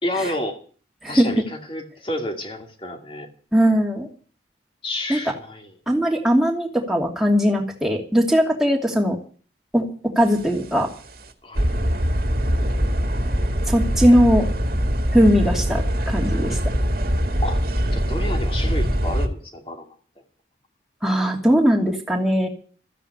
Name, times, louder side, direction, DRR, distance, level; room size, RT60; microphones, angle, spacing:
voice 1, 0.0-0.6 1.1-3.3 4.8-5.8 11.4-11.7 17.4-17.6 17.9-19.9, left 1 dB, 30° left, 4 dB, 2.5 m, -30 dB
voice 2, 3.5-4.1 5.1-5.2 5.9-9.2 9.7-10.9 13.7-14.5 15.1-16.6 21.0-22.5, equal, ahead, 0 dB, 2.7 m, -19 dB
sound 1, 10.3-10.7 11.1-11.2 11.5-19.3, equal, 55° right, 2.0 m, -22 dB
14.0 x 9.8 x 8.2 m, 0.43 s
head